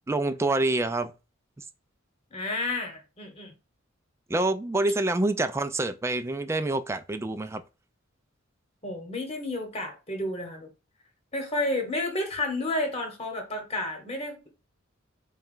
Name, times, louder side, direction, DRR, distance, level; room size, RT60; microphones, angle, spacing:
voice 1, 0.1-1.1 4.3-7.6, right 2 dB, 15° right, 0.3 m, -26 dB
voice 2, 2.3-3.5 8.8-10.7 11.3-14.5, left 2 dB, 30° left, 1.1 m, -31 dB
4.1 x 2.3 x 3.7 m
head